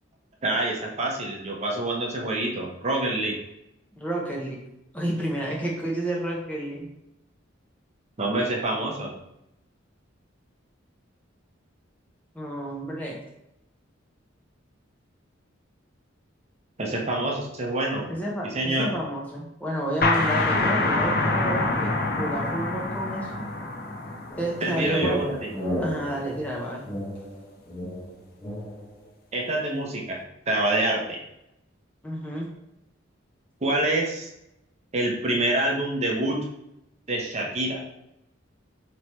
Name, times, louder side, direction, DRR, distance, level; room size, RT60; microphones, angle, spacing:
voice 1, 0.4-3.3 8.2-9.1 16.8-18.0 18.4-18.9 24.6-25.5 29.3-30.2 30.5-31.2 33.6-34.3 34.9-36.4 37.1-37.8, right 1 dB, 35° right, -1 dB, 0.7 m, -26 dB
voice 2, 4.0-4.6 4.9-6.9 12.3-13.2 18.1-23.4 24.4-25.2 25.8-26.8 32.0-32.5, right 1 dB, 5° left, -3 dB, 0.6 m, -30 dB
sound 1, 20.0-25.4, left 2 dB, 50° left, 0.6 m, -26 dB
sound 2, 24.3-29.0, equal, 30° left, 1.1 m, -33 dB
3.3 x 3.0 x 4.2 m, 0.84 s
head